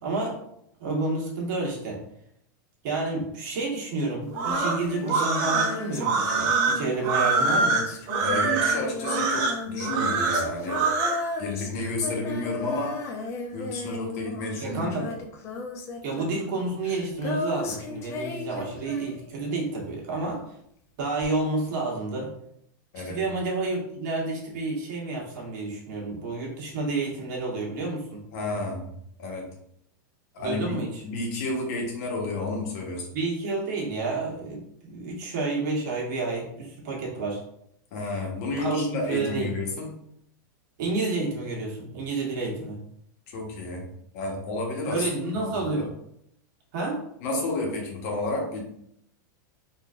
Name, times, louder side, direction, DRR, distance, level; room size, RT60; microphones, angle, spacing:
voice 1, 0.0-0.4 0.8-2.0 2.8-7.9 14.6-15.1 16.0-20.4 21.0-22.3 23.0-28.2 30.4-31.0 33.1-37.4 38.6-39.5 40.8-42.8 44.8-45.9 46.7-47.0, right 3 dB, 60° right, -2 dB, 1.2 m, -30 dB
Female singing, 4.3-19.7 21.2-21.3, left 3 dB, 25° left, 0.4 m, -35 dB
sound 1, 4.3-11.2, right 4 dB, 40° right, 0.6 m, -24 dB
voice 2, 8.2-10.9 11.4-13.0 13.5-14.9 22.9-23.2 28.3-28.9 29.2-29.5 30.3-30.8 31.0-33.1 37.9-39.9 43.3-43.9 44.1-45.1 45.3-45.9 47.2-48.6, left 2 dB, 55° left, 0 dB, 1.0 m, -31 dB
3.8 x 2.5 x 2.4 m, 0.72 s
supercardioid pair, 150°, 11 cm